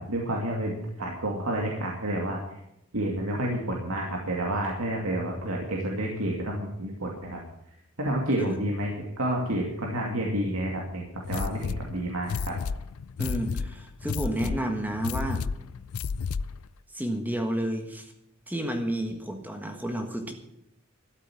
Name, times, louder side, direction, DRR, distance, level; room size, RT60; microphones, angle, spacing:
voice 1, 0.0-2.6 2.9-7.4 8.0-12.6, right 1 dB, 70° right, -1 dB, 2.4 m, -30 dB
sound 1, 11.2-16.7, left 5 dB, 70° left, 0.4 m, -32 dB
voice 2, 13.2-15.4 16.9-18.1 18.5-20.3, right 1 dB, 10° right, 5 dB, 1.5 m, -31 dB
13.0 x 8.3 x 8.6 m, 0.81 s
head